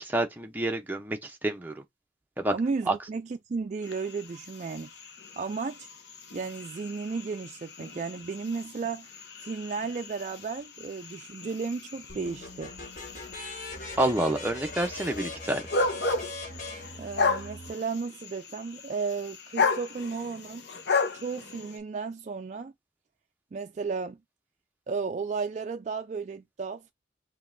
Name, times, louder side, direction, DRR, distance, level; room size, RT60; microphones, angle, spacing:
voice 1, 0.0-1.8 2.4-2.5 2.9-3.0 14.0-15.6, right 1 dB, 10° right, 0.7 m, -28 dB
voice 2, 2.5-4.9 5.4-5.9 6.3-9.1 9.4-12.7 17.0-20.7 21.1-22.7 23.5-24.2 24.9-26.9, right 4 dB, 40° right, 0.3 m, -34 dB
sound 1, 3.8-21.8, left 4 dB, 70° left, 0.7 m, -35 dB
sound 2, 12.1-17.7, left 2 dB, 45° left, 1.5 m, -40 dB
5.3 x 2.9 x 2.6 m
head